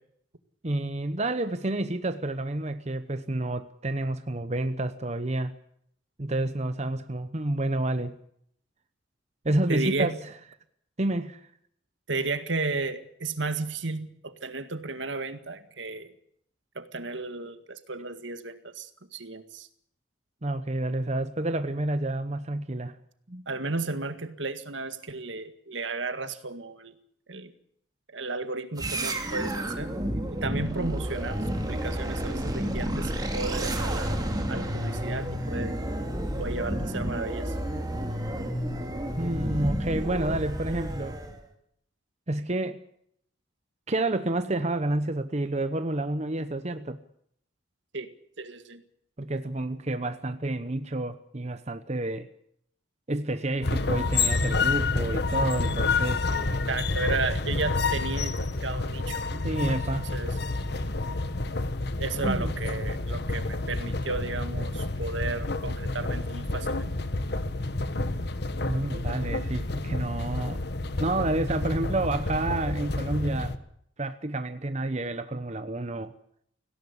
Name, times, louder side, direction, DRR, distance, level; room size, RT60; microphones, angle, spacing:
voice 1, 0.6-5.5 6.2-8.2 9.4-10.3 11.0-11.5 20.4-22.9 23.3-23.4 39.2-41.2 42.3-42.8 43.9-47.0 49.2-52.3 53.1-56.3 59.3-60.1 62.2-62.5 68.7-70.7 71.0-73.6 74.0-76.1, right 2 dB, 35° right, 10 dB, 1.0 m, -29 dB
voice 2, 9.7-10.2 12.1-16.1 16.8-19.7 23.5-26.9 27.3-27.5 28.1-29.9 30.3-31.4 31.6-34.1 34.5-35.8 36.4-37.5 47.9-48.1 48.4-48.8 56.7-59.2 59.9-60.4 62.0-66.8, right 3 dB, 75° right, 10 dB, 1.9 m, -33 dB
sound 1, 28.8-41.4, right 1 dB, 20° right, 3.0 m, -31 dB
sound 2, 53.6-73.6, left 3 dB, 60° left, 1.4 m, -29 dB
18.0 x 17.0 x 9.8 m, 0.69 s
head